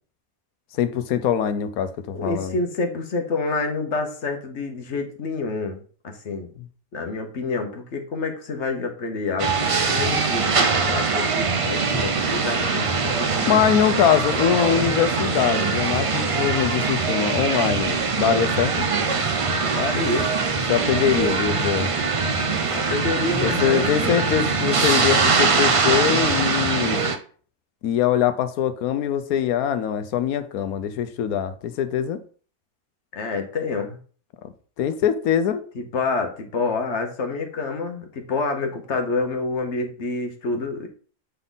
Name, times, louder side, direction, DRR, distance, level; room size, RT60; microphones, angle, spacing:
voice 1, 0.7-2.6 6.6-6.7 13.5-18.8 20.7-21.9 23.4-27.0 27.8-32.2 34.4-34.5 34.8-35.6, left 9 dB, 80° left, 1.2 m, -23 dB
voice 2, 2.1-6.5 6.9-13.6 19.7-20.3 22.7-24.3 33.1-34.0 35.7-40.9, left 3 dB, 55° left, 1.3 m, -28 dB
sound 1, 9.4-27.2, right 4 dB, 50° right, 0.4 m, -22 dB
8.1 x 3.8 x 3.9 m
omnidirectional pair, 1.5 m